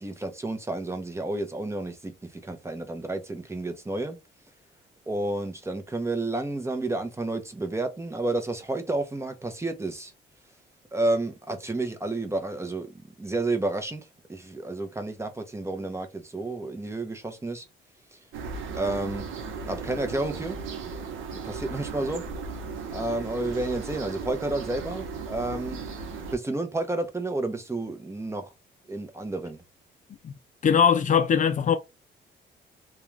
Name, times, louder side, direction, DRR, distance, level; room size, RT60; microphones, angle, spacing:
voice 1, 0.0-4.2 5.1-10.1 10.9-17.7 18.1-18.2 18.7-19.3 19.6-20.6 21.3-22.2 22.9-25.8 26.3-28.5 28.9-29.6, right 2 dB, 15° right, 0.7 m, -31 dB
sound 1, 18.3-26.4, right 4 dB, 85° right, 0.7 m, -36 dB
voice 2, 30.6-31.8, left 7 dB, 40° left, 0.4 m, -21 dB
2.4 x 2.3 x 3.1 m
cardioid pair, 90°, 20 cm